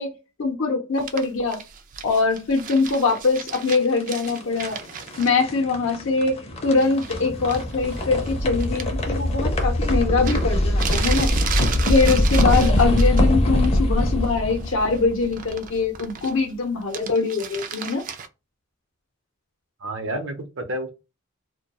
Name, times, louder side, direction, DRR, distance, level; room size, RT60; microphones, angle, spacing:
voice 1, 0.0-1.6 2.0-4.8 5.2-11.3 11.9-18.0, left 4 dB, 75° left, 0.6 m, -23 dB
sound 1, 1.0-5.3 6.8-7.2 7.5-8.9 9.9-10.0 10.2-13.2 13.6-14.0 14.3-16.5 16.8-18.3, right 7 dB, 40° right, 0.3 m, -34 dB
sound 2, 3.7-15.8, left 1 dB, 30° left, 0.5 m, -23 dB
voice 2, 19.8-20.9, right 1 dB, 65° right, 0.7 m, -30 dB
2.2 x 2.2 x 2.8 m
head